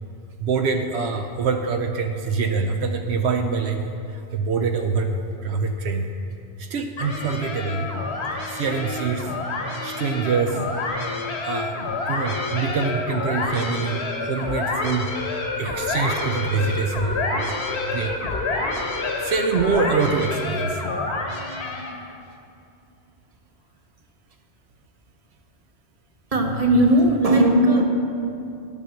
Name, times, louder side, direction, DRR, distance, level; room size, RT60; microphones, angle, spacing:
voice 1, 0.4-3.8 4.1-5.2 5.4-6.1 6.6-7.9 8.5-9.3 9.8-10.6 11.5-11.7 12.1-17.2 17.9-18.2 19.2-20.8, right 5 dB, 85° right, 5 dB, 0.9 m, -25 dB
sound 1, 7.0-22.1, left 3 dB, 85° left, 1.4 m, -28 dB
voice 2, 26.3-27.9, right 1 dB, 35° right, 2 dB, 1.0 m, -17 dB
9.8 x 7.3 x 6.4 m, 2.5 s
omnidirectional pair, 1.1 m